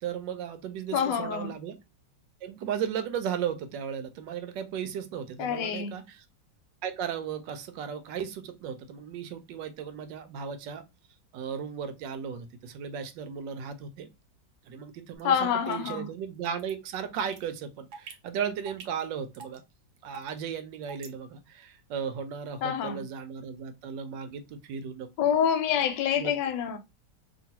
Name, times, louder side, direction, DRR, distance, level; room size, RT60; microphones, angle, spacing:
voice 1, 0.0-1.8 2.4-6.2 6.8-10.8 11.3-14.1 14.7-19.6 20.0-25.4 26.2-26.3, right 8 dB, 85° right, 1.3 m, -35 dB
voice 2, 0.9-1.5 5.4-5.9 15.2-16.1 22.6-23.0 25.2-26.8, left 8 dB, 80° left, 1.2 m, -27 dB
sound 1, 15.2-15.3 15.7-15.9 16.4-16.7 17.2-17.4 17.9-18.1 18.7-19.0 19.3-19.6 20.1-20.4 20.8-21.1, right 5 dB, 65° right, 1.1 m, -43 dB
3.0 x 2.6 x 2.7 m
omnidirectional pair, 1.9 m